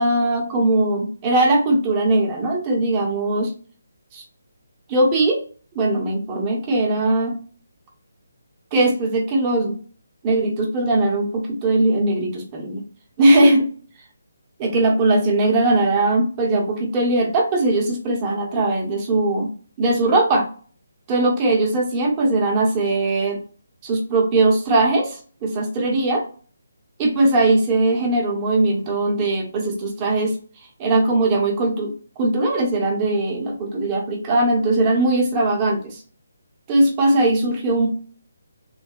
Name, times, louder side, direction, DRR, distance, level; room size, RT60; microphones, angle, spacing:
voice 1, 0.0-3.5 4.1-4.2 4.9-5.4 5.7-7.3 8.7-9.7 10.2-12.8 13.2-13.7 14.6-19.5 19.8-20.4 21.1-23.4 23.8-26.2 27.0-30.4 30.8-36.0 36.7-37.9, right 2 dB, 25° right, 0 dB, 1.0 m, -20 dB
3.3 x 2.6 x 2.3 m, 0.41 s
figure-of-eight pair, 155°, 0 cm